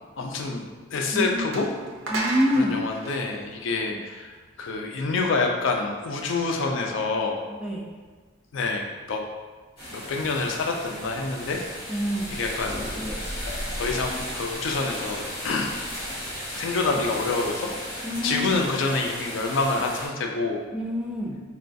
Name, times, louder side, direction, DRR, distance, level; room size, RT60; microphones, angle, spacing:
voice 1, 0.2-1.7 2.5-4.3 4.6-7.4 8.5-9.2 9.9-11.6 12.3-12.9 13.7-15.7 16.5-20.6, left 3 dB, 70° left, 2 dB, 0.4 m, -27 dB
sound 1, 0.9-1.0 1.5-4.3, right 2 dB, 70° right, 0.5 m, -33 dB
voice 2, 1.1-1.5 2.1-2.8 3.9-4.0 7.5-7.9 11.9-12.3 18.0-18.5 20.7-21.4, equal, 5° right, -4 dB, 0.4 m, -26 dB
sound 2, 9.8-20.1, equal, 25° left, 1.4 m, -35 dB
sound 3, 12.6-18.6, left 1 dB, 30° right, 0.7 m, -42 dB
4.1 x 2.2 x 2.6 m, 1.4 s
head